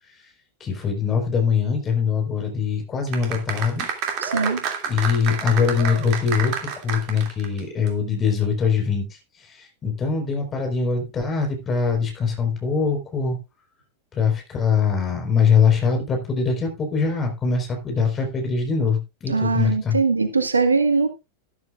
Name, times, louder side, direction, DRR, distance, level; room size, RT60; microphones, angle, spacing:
voice 1, 0.6-3.9 4.9-9.1 9.5-13.4 14.1-20.0, left 6 dB, 25° left, 4.3 m, -22 dB
sound 1, 3.1-7.6 7.9-8.0, right 7 dB, 40° right, 2.6 m, -29 dB
voice 2, 4.2-4.6 19.3-21.1, right 4 dB, 75° right, 1.6 m, -21 dB
13.0 x 12.5 x 2.5 m
figure-of-eight pair, 90°, 0 cm